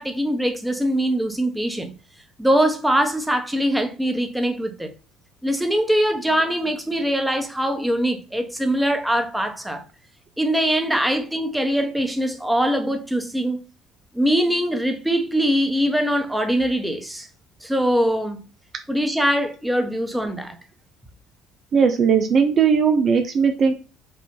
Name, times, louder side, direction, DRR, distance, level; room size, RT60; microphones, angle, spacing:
voice 1, 0.0-1.9 2.4-4.9 5.4-9.8 10.4-13.6 14.1-17.3 17.6-18.4 18.9-20.6, equal, 5° right, 1.0 m, -22 dB
voice 2, 21.7-23.7, right 6 dB, 50° right, 0.6 m, -18 dB
5.2 x 2.6 x 3.8 m
hypercardioid pair, 65°, 0 cm